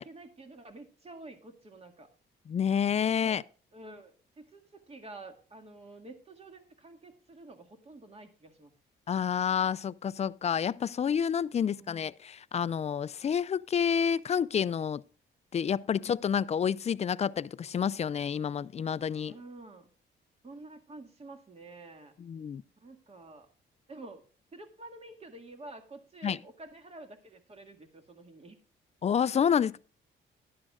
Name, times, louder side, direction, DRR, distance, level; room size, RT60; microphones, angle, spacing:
voice 1, 0.0-2.1 3.2-3.4 3.7-8.7 11.6-12.0 15.8-16.1 19.3-19.9 20.4-22.1 22.8-23.5 23.9-24.2 24.5-28.6, right 2 dB, 30° right, 1.9 m, -49 dB
voice 2, 2.5-3.4 9.1-15.0 15.5-19.4 22.2-22.6 26.2-26.4 29.0-29.8, left 7 dB, 35° left, 0.4 m, -29 dB
11.5 x 11.0 x 2.4 m
cardioid pair, 90°, 20 cm